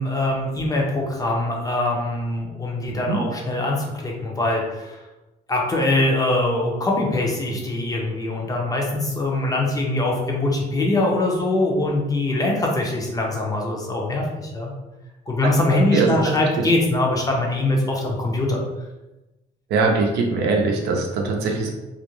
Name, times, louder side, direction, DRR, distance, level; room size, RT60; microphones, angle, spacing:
voice 1, 0.0-5.0 5.5-14.7 15.3-18.6, left 2 dB, 20° left, -1 dB, 0.6 m, -23 dB
voice 2, 2.9-3.2 15.7-16.7 19.7-21.7, right 4 dB, 75° right, 1 dB, 0.6 m, -22 dB
2.5 x 2.1 x 3.0 m, 1.0 s
cardioid pair, 110°, 17 cm